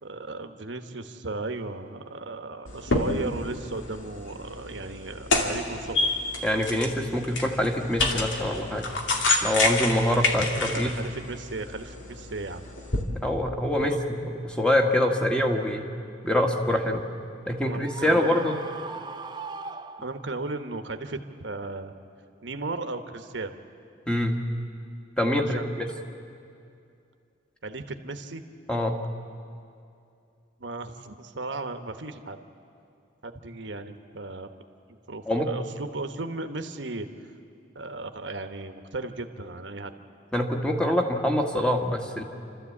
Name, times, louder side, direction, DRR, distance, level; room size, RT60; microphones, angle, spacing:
voice 1, 0.0-6.1 10.4-12.6 13.7-14.0 17.6-18.4 20.0-21.9 22.4-23.6 25.4-25.9 27.6-28.4 30.6-32.4 33.2-34.5 35.1-37.3 37.7-39.9, right 2 dB, 70° right, 7 dB, 1.2 m, -36 dB
sound 1, 2.7-13.0, left 2 dB, 80° left, 2.4 m, -29 dB
voice 2, 6.4-8.9 9.4-10.9 13.2-15.9 16.2-17.1 17.5-18.6 24.1-24.4 25.2-25.9 28.7-29.0 35.3-35.5 40.3-42.2, left 1 dB, 5° left, 2 dB, 1.6 m, -25 dB
Screaming, 17.8-20.5, right 4 dB, 25° right, 0.6 m, -39 dB
30.0 x 13.0 x 8.5 m, 2.5 s
head